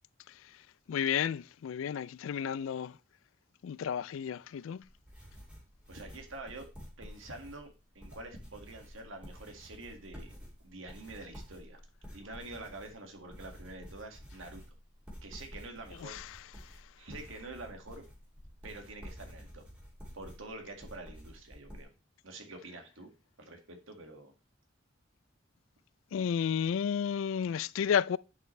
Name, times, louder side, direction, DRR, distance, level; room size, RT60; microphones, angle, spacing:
voice 1, 0.9-3.0 3.6-4.8 16.0-16.4 26.1-28.2, left 8 dB, 85° left, 0.3 m, -32 dB
sound 1, 4.8-21.8, equal, 5° right, 2.7 m, -50 dB
voice 2, 5.9-6.7 7.0-7.7 8.0-10.3 10.6-11.8 12.1-14.6 15.2-16.2 16.5-18.0 18.6-19.6 20.1-21.9 22.2-23.1 23.4-24.3, right 2 dB, 85° right, 1.9 m, -47 dB
10.5 x 5.8 x 3.2 m
head